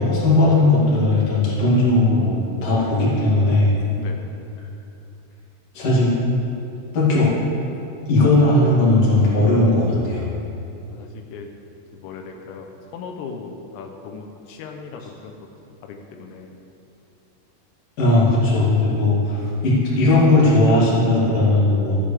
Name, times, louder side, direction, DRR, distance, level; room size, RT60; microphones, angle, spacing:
voice 1, 0.0-3.7 5.7-6.1 6.9-7.3 8.1-10.3 18.0-22.0, left 2 dB, 40° left, -8 dB, 2.7 m, -17 dB
voice 2, 4.0-4.4 10.9-11.5 11.9-15.4 15.8-16.6, left 5 dB, 85° left, 3 dB, 3.3 m, -38 dB
14.5 x 8.0 x 3.4 m, 2.7 s
omnidirectional pair, 5.8 m